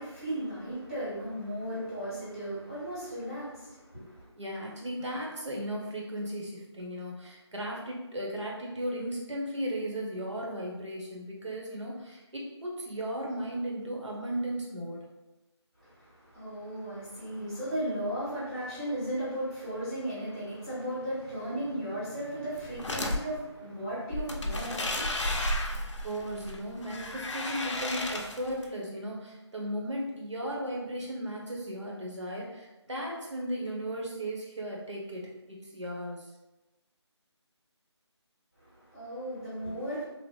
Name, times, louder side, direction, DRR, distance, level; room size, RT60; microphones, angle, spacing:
voice 1, 0.0-4.3 15.8-25.9 38.6-40.0, right 1 dB, 10° right, -14 dB, 0.8 m, -36 dB
voice 2, 4.3-15.1 26.0-36.3, equal, 75° right, -2 dB, 1.0 m, -36 dB
sound 1, 22.6-23.2 24.1-28.6, left 1 dB, 85° left, 0.5 m, -33 dB
3.0 x 2.0 x 3.1 m, 1.0 s
figure-of-eight pair, 175°, 15 cm